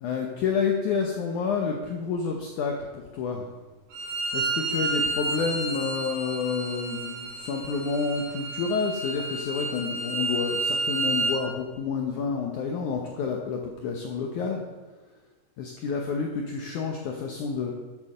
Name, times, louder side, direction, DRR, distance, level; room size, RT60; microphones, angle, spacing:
voice 1, 0.0-3.5 4.3-14.6 15.6-17.7, left 5 dB, 85° left, 2 dB, 1.7 m, -29 dB
Bowed string instrument, 3.9-11.4, right 3 dB, 55° right, 4.7 m, -30 dB
11.5 x 7.5 x 6.6 m, 1.2 s
omnidirectional pair, 4.9 m